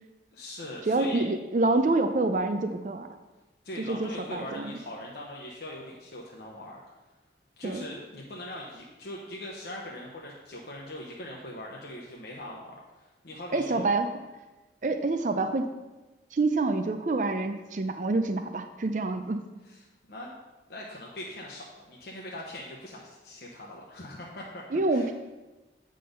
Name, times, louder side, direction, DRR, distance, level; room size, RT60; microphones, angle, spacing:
voice 1, 0.3-1.2 3.6-6.8 7.6-13.8 19.7-20.4 20.7-24.6 24.9-25.1, left 1 dB, 60° left, -3 dB, 0.9 m, -41 dB
voice 2, 0.9-3.1 3.9-4.7 7.6-7.8 13.5-14.1 14.8-15.7 16.3-19.4 24.7-25.1, right 2 dB, 45° right, 8 dB, 0.4 m, -27 dB
8.5 x 3.9 x 5.1 m, 1.1 s
head